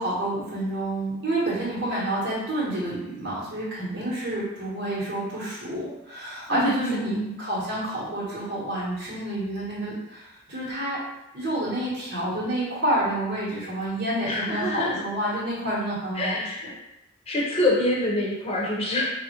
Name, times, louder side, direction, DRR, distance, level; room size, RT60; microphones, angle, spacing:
voice 1, 0.0-11.0 11.3-16.4, right 1 dB, 65° right, -8 dB, 1.0 m, -28 dB
voice 2, 6.5-7.3 14.3-15.0 16.1-16.8 17.3-19.1, left 1 dB, 30° left, -4 dB, 0.7 m, -26 dB
3.5 x 2.0 x 2.8 m, 0.89 s
head